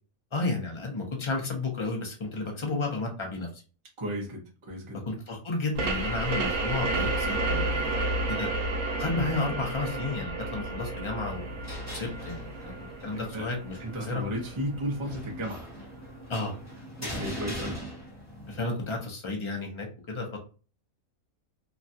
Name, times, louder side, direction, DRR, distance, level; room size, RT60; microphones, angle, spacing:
voice 1, 0.3-3.6 5.1-8.0 8.3-8.5 9.0-11.5 11.9-12.7 13.0-14.2 16.3-16.6 18.5-20.4, left 3 dB, 35° left, 1 dB, 0.5 m, -32 dB
voice 2, 4.0-5.0 12.6-12.7 13.1-13.5 13.8-15.7 17.0-17.8, equal, 25° right, -2 dB, 0.7 m, -34 dB
sound 1, 5.8-15.1, right 2 dB, 85° right, 1.1 m, -31 dB
sound 2, 11.3-18.6, equal, 10° left, 1.0 m, -41 dB
3.0 x 2.3 x 2.6 m, 0.36 s
omnidirectional pair, 1.5 m